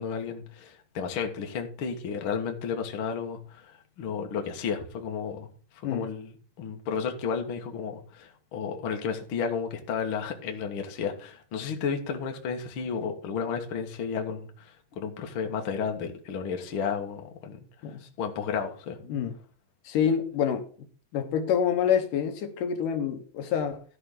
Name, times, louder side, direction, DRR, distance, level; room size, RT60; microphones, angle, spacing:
voice 1, 0.0-5.5 5.7-17.6 18.2-19.0, left 6 dB, 50° left, 1.8 m, -32 dB
voice 2, 19.8-20.7 21.1-23.8, left 8 dB, 75° left, 2.6 m, -27 dB
13.0 x 4.4 x 6.6 m
omnidirectional pair, 3.9 m